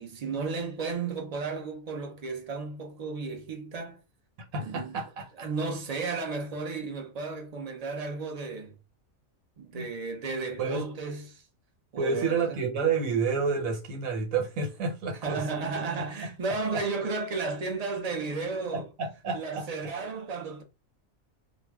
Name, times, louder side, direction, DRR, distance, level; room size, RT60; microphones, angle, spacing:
voice 1, 0.0-4.0 4.6-5.0 5.4-8.8 9.6-11.4 11.9-12.6 15.2-18.9 19.3-20.6, right 4 dB, 45° right, 0.5 m, -33 dB
voice 2, 4.5-5.5 9.7-9.9 10.6-10.8 12.0-15.6 16.0-16.1 16.7-16.8 18.7-19.7, right 5 dB, 85° right, 1.3 m, -30 dB
2.5 x 2.2 x 3.3 m
omnidirectional pair, 1.4 m